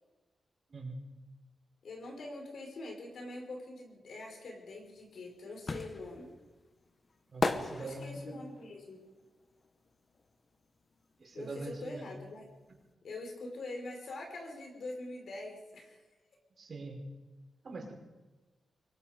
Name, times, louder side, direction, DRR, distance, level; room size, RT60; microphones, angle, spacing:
voice 1, 0.7-1.0 7.3-8.1 11.2-12.1 16.6-17.1 17.6-17.9, right 2 dB, 40° right, 1 dB, 5.4 m, -43 dB
voice 2, 1.8-6.3 7.8-9.0 11.3-12.4 13.0-16.0, left 2 dB, 60° left, 2 dB, 4.9 m, -44 dB
sound 1, 4.8-10.7 10.9-12.5 12.8-12.9, left 3 dB, 30° left, 1.3 m, -37 dB
24.5 x 23.0 x 5.2 m, 1.2 s
wide cardioid pair, 180°, 0 cm